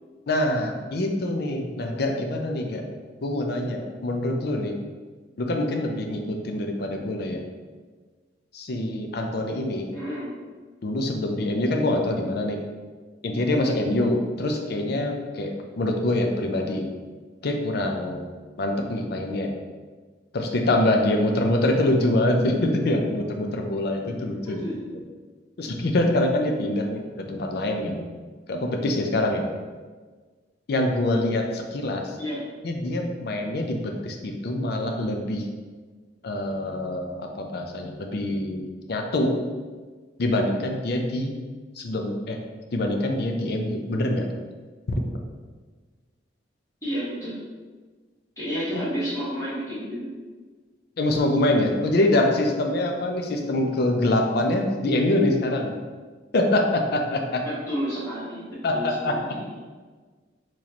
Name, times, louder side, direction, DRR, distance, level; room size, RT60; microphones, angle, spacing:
voice 1, 0.3-2.8 3.2-4.8 5.4-7.4 8.5-9.9 10.8-12.6 13.2-16.9 17.4-18.3 18.6-19.5 20.3-24.6 25.6-28.0 28.5-29.5 30.7-32.2 32.6-35.5 36.2-39.4 40.2-41.3 41.8-42.4 42.7-44.3 44.9-45.0 51.0-55.7 56.3-57.4 58.6-59.2, left 1 dB, 55° left, 3 dB, 0.5 m, -25 dB
voice 2, 9.9-10.3 24.4-24.9 32.2-32.4 46.8-47.4 48.4-50.1 57.4-59.5, equal, 15° left, -10 dB, 1.4 m, -31 dB
4.0 x 3.1 x 2.9 m, 1.4 s
head